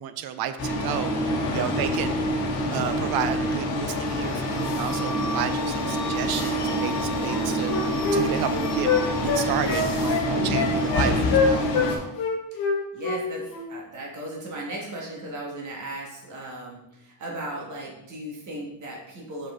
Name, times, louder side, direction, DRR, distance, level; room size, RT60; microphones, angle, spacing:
voice 1, 0.0-1.1 1.5-2.2 2.7-7.7 8.1-8.9 9.2-11.7, right 10 dB, 65° right, 10 dB, 0.7 m, -31 dB
sound 1, 0.6-12.0, equal, 70° left, 2.1 m, -26 dB
voice 2, 1.2-1.9 11.6-12.0 12.5-12.6 12.9-19.5, right 1 dB, 45° right, -2 dB, 1.8 m, -37 dB
Wind instrument woodwind instrument, 7.2-11.9 12.2-13.2 13.5-13.7, left 5 dB, 55° left, 1.9 m, -25 dB
5.9 x 5.2 x 3.7 m, 0.86 s
cardioid pair, 125°, 41 cm